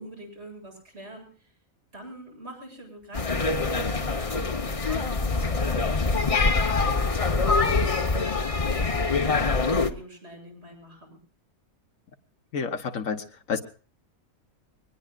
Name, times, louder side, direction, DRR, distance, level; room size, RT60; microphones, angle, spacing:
voice 1, 0.0-1.5 1.9-7.9 8.6-11.2, right 1 dB, 50° right, 0 dB, 8.3 m, -45 dB
sound 1, 3.1-9.9, left 3 dB, 30° left, 0.9 m, -24 dB
voice 2, 12.5-13.6, left 6 dB, 70° left, 8 dB, 1.5 m, -30 dB
24.0 x 19.5 x 2.4 m, 0.39 s
omnidirectional pair, 1.5 m